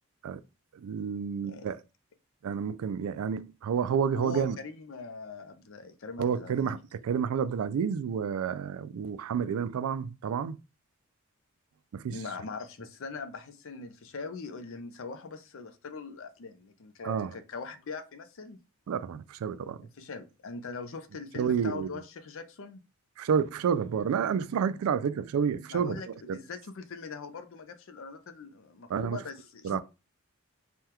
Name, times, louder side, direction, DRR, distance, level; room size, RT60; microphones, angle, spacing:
voice 1, 0.7-1.8 2.4-4.6 6.2-10.6 11.9-12.2 17.0-17.3 18.9-19.8 21.4-21.9 23.2-26.4 28.9-29.2 29.6-29.8, right 7 dB, 85° right, 0.3 m, -30 dB
voice 2, 4.1-6.7 12.1-18.6 19.8-22.8 25.7-29.8, left 4 dB, 65° left, 0.5 m, -41 dB
3.4 x 2.3 x 2.8 m
head